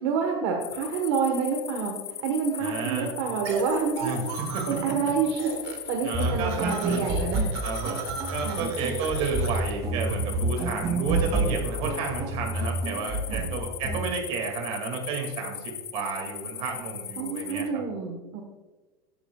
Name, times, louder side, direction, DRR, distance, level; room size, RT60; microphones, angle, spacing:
voice 1, 0.0-1.9 2.2-4.0 4.7-5.3 5.6-7.5 8.4-8.7 13.3-13.5 17.2-18.4, right 6 dB, 55° right, 1 dB, 1.3 m, -28 dB
sound 1, 0.6-17.7, left 10 dB, 20° left, 0.4 m, -39 dB
voice 2, 2.6-3.1 4.0-5.1 6.0-7.2 7.6-17.8, right 4 dB, 40° right, 2 dB, 2.2 m, -32 dB
sound 2, 3.4-4.9 5.2-5.9 6.1-9.7, right 6 dB, 75° right, 1.6 m, -36 dB
sound 3, 6.1-14.0, right 2 dB, 25° right, 2.4 m, -29 dB
13.5 x 9.1 x 2.3 m, 1.2 s
supercardioid pair, 165°, 14 cm